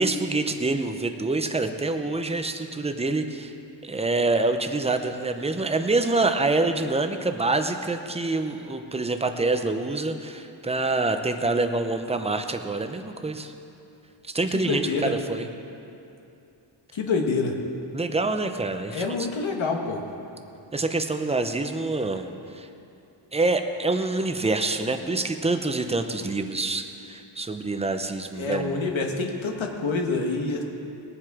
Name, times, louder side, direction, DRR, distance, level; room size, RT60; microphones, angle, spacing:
voice 1, 0.0-3.5 3.8-13.5 14.3-15.5 17.9-19.0 20.7-22.3 22.5-22.7 23.3-28.8, right 2 dB, 15° right, 7 dB, 0.6 m, -26 dB
voice 2, 14.5-15.1 16.9-17.5 18.9-20.0 28.3-30.6, left 4 dB, 70° left, 2 dB, 1.5 m, -27 dB
20.5 x 7.7 x 4.8 m, 2.7 s
wide cardioid pair, 160°, 48 cm